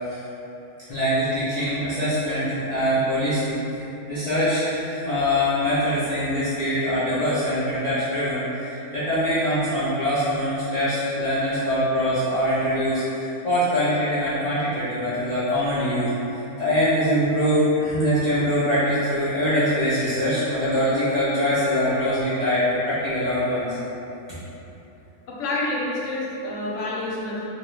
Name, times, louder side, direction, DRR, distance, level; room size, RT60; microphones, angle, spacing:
voice 1, 0.9-3.6 4.1-16.1 16.6-23.7, equal, 85° left, -14 dB, 0.3 m, -23 dB
voice 2, 25.3-27.5, left 1 dB, 70° left, -5 dB, 0.8 m, -28 dB
2.6 x 2.3 x 3.0 m, 3.0 s
omnidirectional pair, 1.5 m